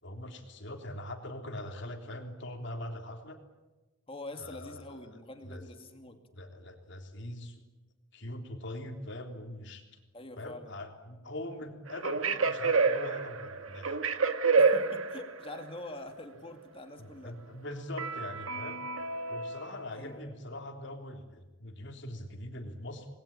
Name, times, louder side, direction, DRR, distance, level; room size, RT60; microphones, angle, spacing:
voice 1, 0.0-3.4 4.3-5.6 6.3-7.5 8.1-9.8 10.4-14.0 17.0-18.8 19.3-23.1, left 1 dB, 60° left, 3 dB, 3.6 m, -42 dB
voice 2, 4.1-6.2 10.1-10.7 14.5-17.3 19.9-20.4, left 2 dB, 25° left, 6 dB, 2.2 m, -45 dB
sound 1, 11.9-15.6 18.0-20.1, right 4 dB, 80° right, 1.7 m, -29 dB
28.5 x 21.0 x 8.9 m, 1.1 s
head